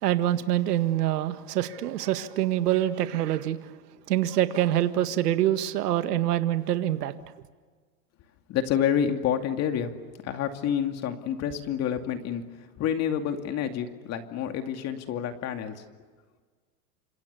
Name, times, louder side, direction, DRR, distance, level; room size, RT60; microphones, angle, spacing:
voice 1, 0.0-3.6 4.1-7.1, right 12 dB, 80° right, 1.9 m, -25 dB
voice 2, 8.5-9.9 10.2-12.4 12.8-15.7, left 9 dB, 35° left, 2.5 m, -28 dB
29.0 x 27.0 x 7.0 m
supercardioid pair, 135°, 46 cm